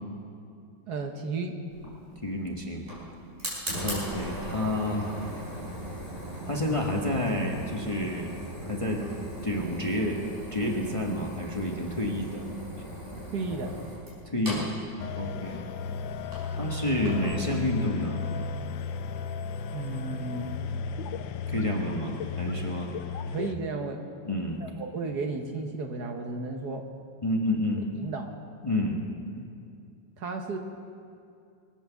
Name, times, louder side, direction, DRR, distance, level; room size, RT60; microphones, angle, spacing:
voice 1, 0.9-1.6 13.3-13.8 19.7-20.5 23.3-24.0 24.6-26.9 28.0-28.3 29.4-29.5 30.2-30.6, right 3 dB, 65° right, 4 dB, 1.6 m, -33 dB
Fire, 1.7-17.4, equal, 30° right, 4.9 m, -39 dB
voice 2, 2.2-2.8 3.8-5.2 6.5-8.3 8.6-9.0 9.4-10.2 10.5-12.4 14.2-14.8 15.1-15.6 16.5-18.2 21.5-22.9 24.2-24.6 27.2-27.8 28.6-29.0, left 1 dB, 20° left, 0 dB, 1.2 m, -29 dB
sound 1, 15.0-23.6, left 4 dB, 85° left, 1.4 m, -34 dB
22.0 x 8.6 x 7.0 m, 2.5 s
omnidirectional pair, 2.0 m